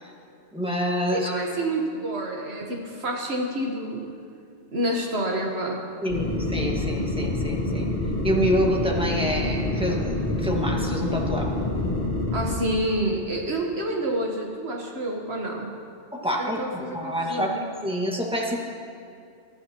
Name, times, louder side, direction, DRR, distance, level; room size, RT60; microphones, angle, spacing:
voice 1, 0.5-1.3 6.0-7.9 8.2-11.5 16.1-18.6, equal, 5° right, -1 dB, 1.6 m, -27 dB
voice 2, 1.1-4.1 4.7-5.8 12.3-15.7 16.4-17.6, right 1 dB, 65° right, 0 dB, 1.5 m, -28 dB
sound 1, 6.1-12.5, left 2 dB, 55° left, 2.0 m, -27 dB
23.0 x 12.5 x 2.9 m, 2.4 s
omnidirectional pair, 1.2 m